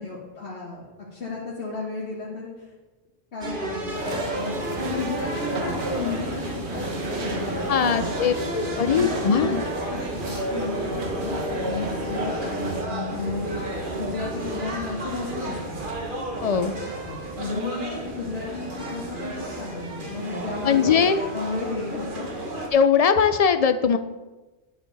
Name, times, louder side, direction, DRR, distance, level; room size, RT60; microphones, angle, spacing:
voice 1, 0.0-2.7 3.3-8.1 8.7-13.6 14.0-15.8 17.0-22.3, left 3 dB, 80° left, -6 dB, 1.8 m, -33 dB
sound 1, 3.4-22.7, right 1 dB, 50° right, 1.4 m, -32 dB
sound 2, 3.9-12.8, right 1 dB, 80° right, 1.5 m, -33 dB
voice 2, 7.7-9.6 16.4-16.7 20.6-21.2 22.7-24.0, left 7 dB, 50° left, 10 dB, 0.5 m, -20 dB
9.9 x 7.2 x 4.0 m, 1.2 s
omnidirectional pair, 1.1 m